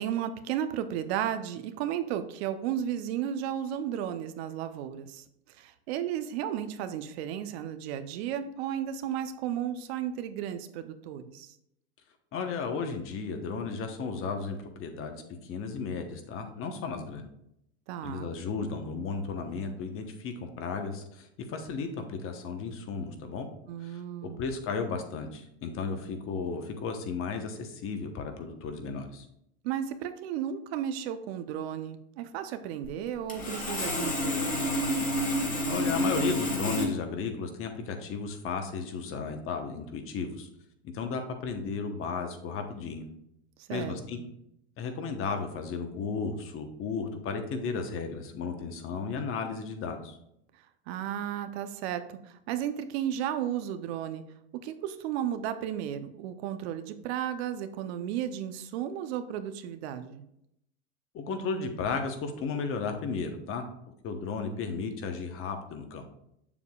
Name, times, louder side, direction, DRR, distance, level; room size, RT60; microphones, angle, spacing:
voice 1, 0.0-5.2 5.6-11.5 17.9-18.3 23.7-24.4 29.6-34.6 43.7-44.0 50.9-54.2 54.6-60.2, right 10 dB, 65° right, 10 dB, 0.7 m, -34 dB
voice 2, 12.3-17.2 18.0-23.5 23.8-29.2 35.7-40.5 40.9-43.1 43.7-44.2 44.8-50.1 61.1-63.6 64.0-66.0, left 5 dB, 40° left, 6 dB, 1.1 m, -34 dB
Sawing, 32.8-32.9 33.3-36.8, left 1 dB, 20° left, 1.7 m, -29 dB
7.0 x 6.7 x 2.4 m, 0.78 s
supercardioid pair, 115°, 35 cm